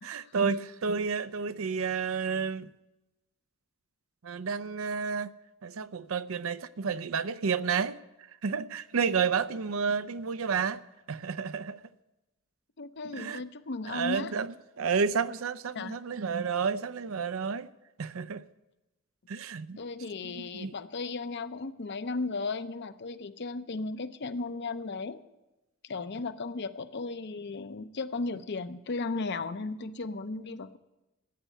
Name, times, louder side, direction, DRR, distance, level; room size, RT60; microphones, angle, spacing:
voice 1, 0.0-2.7 4.2-5.3 5.6-8.0 8.4-10.8 11.1-11.8 13.1-13.4 13.9-17.7 18.0-18.4 19.3-19.8 20.2-20.7, right 5 dB, 80° right, 0.6 m, -31 dB
voice 2, 12.8-14.3 15.7-16.0 19.8-25.2 25.8-30.8, left 3 dB, 55° left, 0.7 m, -35 dB
13.5 x 8.3 x 9.9 m
head